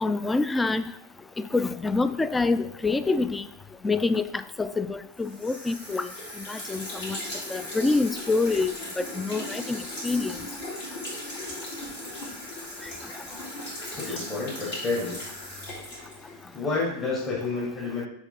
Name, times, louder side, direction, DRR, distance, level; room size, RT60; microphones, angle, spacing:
voice 1, 0.0-0.8 1.4-3.5 3.8-4.2 4.6-6.1 6.5-7.2 7.5-10.3, left 3 dB, 10° left, 13 dB, 0.3 m, -26 dB
sound 1, 5.2-16.6, left 1 dB, 60° left, 2.7 m, -38 dB
voice 2, 13.8-15.2 16.5-18.1, left 3 dB, 30° left, -6 dB, 1.8 m, -30 dB
7.0 x 3.9 x 3.9 m, 0.73 s
figure-of-eight pair, 90°, 0 cm